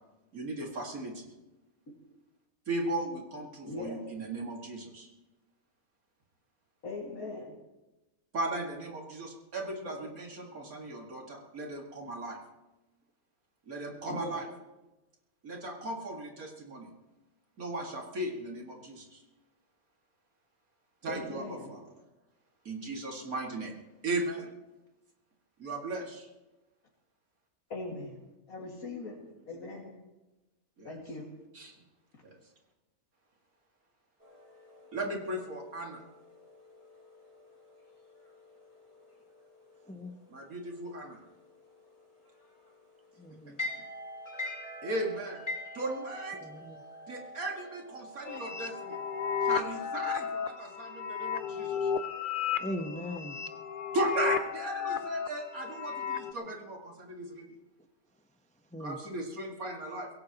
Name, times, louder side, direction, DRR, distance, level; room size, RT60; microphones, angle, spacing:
voice 1, 0.3-1.3 2.7-5.1 8.3-12.4 13.7-14.5 15.4-16.9 17.6-19.2 21.0-21.8 22.6-23.8 24.0-24.5 25.6-26.3 30.8-31.0 31.5-31.8 32.2-32.4 34.9-36.0 40.3-41.2 44.8-45.4 45.7-46.4 47.1-49.0 49.4-51.9 53.9-57.5 58.8-60.1, right 2 dB, 75° right, 0 dB, 2.5 m, -37 dB
voice 2, 3.7-4.0 6.8-7.6 9.8-9.9 14.1-14.5 21.1-21.7 27.7-29.2 29.5-29.9 30.8-31.3, left 2 dB, 75° left, -4 dB, 2.6 m, -40 dB
sound 1, 34.2-49.6, left 1 dB, 25° left, 3.7 m, -46 dB
voice 3, 43.2-43.6 46.4-46.8 52.6-53.4 58.7-59.0, equal, 5° left, 6 dB, 0.6 m, -39 dB
sound 2, 48.3-56.3, left 7 dB, 50° left, 0.6 m, -34 dB
24.0 x 17.0 x 3.0 m, 1.0 s
omnidirectional pair, 1.5 m